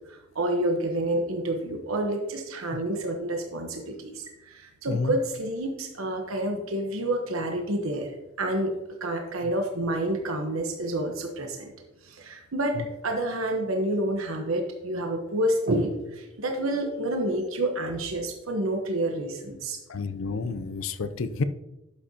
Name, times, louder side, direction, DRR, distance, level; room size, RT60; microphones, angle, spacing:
voice 1, 0.1-8.1 8.4-11.7 12.0-19.8, right 1 dB, 85° right, 3 dB, 1.1 m, -29 dB
voice 2, 19.9-21.4, left 4 dB, 80° left, 12 dB, 0.5 m, -30 dB
11.0 x 7.5 x 2.9 m, 0.97 s
head